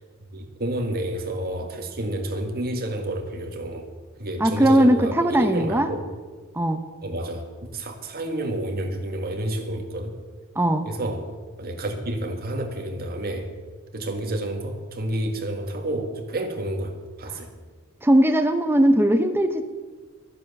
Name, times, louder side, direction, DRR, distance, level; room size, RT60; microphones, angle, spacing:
voice 1, 0.3-3.9 4.2-6.0 7.0-7.4 7.7-10.2 10.9-11.3 11.6-13.5 13.9-17.5, right 1 dB, 45° right, 3 dB, 1.8 m, -29 dB
voice 2, 4.4-5.9 6.5-6.8 10.6-10.9 18.0-19.7, right 1 dB, 10° right, 6 dB, 0.8 m, -19 dB
12.0 x 10.0 x 7.0 m, 1.4 s
head